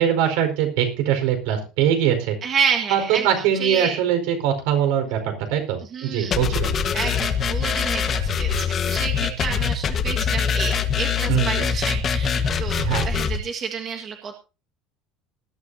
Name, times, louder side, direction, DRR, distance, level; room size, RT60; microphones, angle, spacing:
voice 1, 0.0-2.4 2.9-6.7 11.3-11.6 12.8-13.1, right 9 dB, 75° right, 6 dB, 4.7 m, -22 dB
voice 2, 2.4-4.0 5.9-6.4 6.9-14.3, right 6 dB, 30° right, 2 dB, 1.7 m, -29 dB
sound 1, 6.3-13.4, left 6 dB, 25° left, 1.4 m, -23 dB
20.0 x 12.0 x 2.8 m, 0.31 s
cardioid pair, 175°, 0 cm